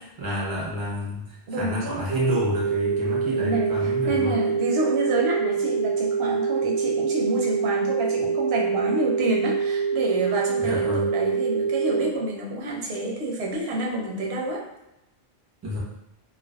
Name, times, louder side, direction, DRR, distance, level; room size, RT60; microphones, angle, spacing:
voice 1, 0.0-4.4 10.6-11.1 15.6-15.8, equal, 25° right, -5 dB, 0.6 m, -29 dB
voice 2, 1.5-2.1 3.2-14.6, right 2 dB, 85° right, -2 dB, 0.8 m, -28 dB
sound 1, 2.1-12.1, right 6 dB, 35° left, 0.7 m, -25 dB
2.5 x 2.2 x 2.2 m, 0.88 s
omnidirectional pair, 1.0 m